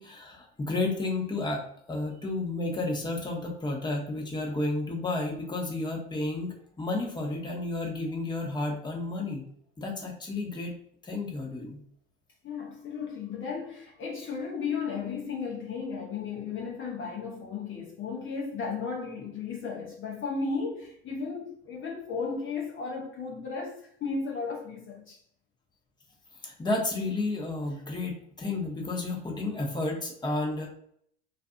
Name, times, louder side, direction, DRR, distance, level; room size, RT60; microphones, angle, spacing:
voice 1, 0.0-9.4 9.8-10.7 11.0-11.8 26.4-30.7, left 2 dB, 15° left, 0.8 m, -32 dB
voice 2, 12.4-25.2, left 5 dB, 40° left, 0.7 m, -34 dB
2.5 x 2.4 x 2.5 m
hypercardioid pair, 75°, 32 cm